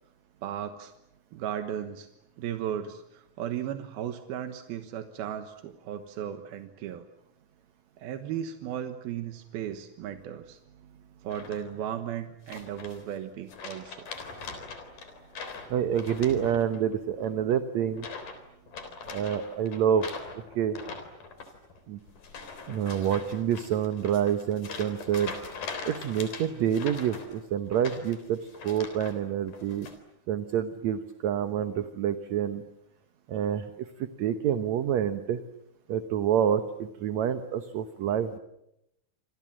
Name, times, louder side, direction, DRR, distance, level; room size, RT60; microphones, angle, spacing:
voice 1, 0.4-0.9 1.3-2.1 2.4-7.1 8.0-10.6 11.2-14.1, right 10 dB, 85° right, 8 dB, 3.2 m, -36 dB
sound 1, 11.3-11.9 12.5-13.2 13.5-16.9 17.2-17.5 17.9-18.4 18.7-29.2 29.5-29.9, left 4 dB, 60° left, 5.2 m, -42 dB
voice 2, 15.7-18.1 19.1-20.0 20.3-20.8 21.9-22.0 22.7-25.3 25.9-28.4 28.6-29.9 30.3-32.6 33.3-33.9 34.2-35.4 35.9-38.4, right 9 dB, 65° right, 9 dB, 2.0 m, -27 dB
28.5 x 26.5 x 7.5 m, 0.83 s
omnidirectional pair, 4.2 m